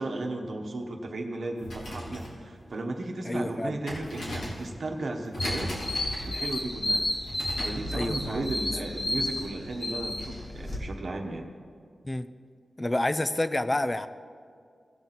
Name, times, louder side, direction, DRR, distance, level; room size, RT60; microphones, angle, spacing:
voice 1, 0.0-5.7 6.2-7.0 7.6-11.5, right 2 dB, 60° right, 2 dB, 1.1 m, -35 dB
sound 1, 1.5-7.9, equal, 85° left, 2.9 m, -38 dB
voice 2, 3.2-3.8 7.9-8.6 12.0-12.3 12.8-14.1, left 1 dB, 20° left, 12 dB, 0.4 m, -29 dB
sound 2, 5.4-10.8, left 1 dB, 45° left, 2.1 m, -32 dB
17.5 x 6.0 x 4.0 m, 2.2 s
wide cardioid pair, 125°, 0 cm